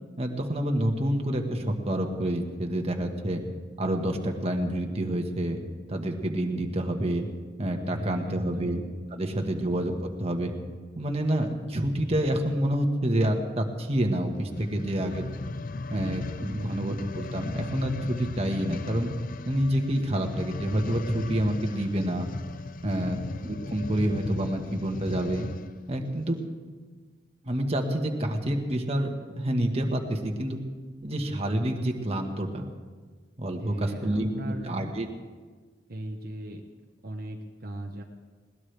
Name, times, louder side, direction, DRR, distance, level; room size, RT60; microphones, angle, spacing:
voice 1, 0.2-3.4 3.8-5.6 5.9-7.3 7.6-8.8 9.1-10.5 11.0-15.2 15.9-19.1 19.4-22.3 22.8-25.5 25.9-26.4 27.4-30.6 31.0-32.7 33.4-35.1, right 1 dB, 35° right, 3 dB, 1.6 m, -28 dB
voice 2, 7.9-8.7 16.5-16.8 22.9-23.2 33.6-34.9 35.9-36.6 37.0-38.0, right 1 dB, 55° right, 1 dB, 1.1 m, -38 dB
sound 1, 14.4-25.8 26.4-26.5, left 3 dB, 50° left, 0.5 m, -37 dB
21.0 x 18.5 x 3.4 m, 1.5 s
head